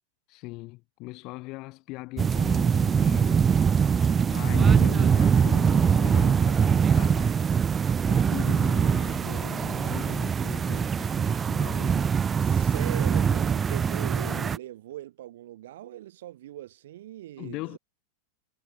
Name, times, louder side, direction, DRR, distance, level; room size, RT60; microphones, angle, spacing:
voice 1, 0.3-7.4 8.1-12.1 12.6-12.7 14.2-14.5 17.4-17.8, left 22 dB, 40° left, 1.1 m, -40 dB
sound 1, 2.2-14.6, right 7 dB, 20° right, 0.4 m, -23 dB
voice 2, 12.4-17.8, right 13 dB, 55° right, 1.8 m, -40 dB
figure-of-eight pair, 90°, 0 cm